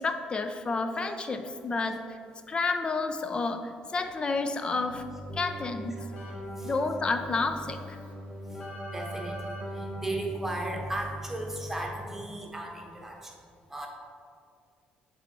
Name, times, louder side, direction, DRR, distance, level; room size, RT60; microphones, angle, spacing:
voice 1, 0.0-2.2 2.5-5.1 5.3-6.0 6.6-8.0, left 3 dB, 30° left, 7 dB, 0.5 m, -30 dB
Keyboard (musical), 4.8-12.1, right 1 dB, 50° left, 1.5 m, -39 dB
voice 2, 8.9-13.3 13.7-13.9, right 1 dB, 10° right, 0 dB, 1.1 m, -36 dB
7.3 x 3.5 x 4.0 m, 2.2 s
cardioid pair, 90°, 3 cm